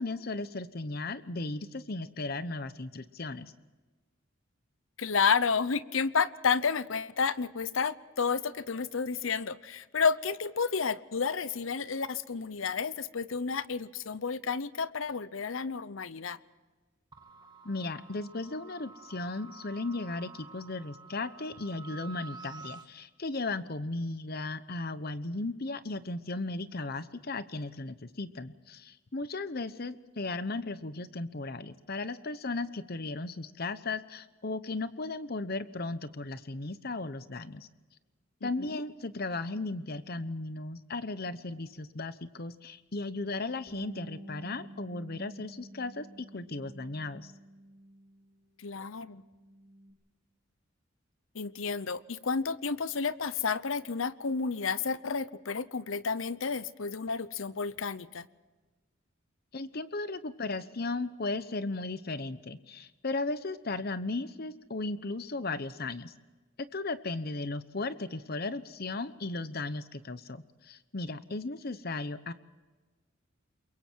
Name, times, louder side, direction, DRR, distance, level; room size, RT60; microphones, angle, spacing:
voice 1, 0.0-3.5 17.6-37.7 38.4-47.3 59.5-66.1 66.7-72.3, left 3 dB, 50° left, 1.0 m, -36 dB
voice 2, 5.0-16.4 38.4-38.8 48.6-49.2 51.3-58.3, left 5 dB, 75° left, 0.8 m, -31 dB
sound 1, 17.1-22.9, right 4 dB, 20° right, 1.7 m, -50 dB
Bass guitar, 43.7-48.4 48.7-49.9, right 1 dB, 30° left, 3.4 m, -50 dB
28.5 x 22.5 x 4.6 m
head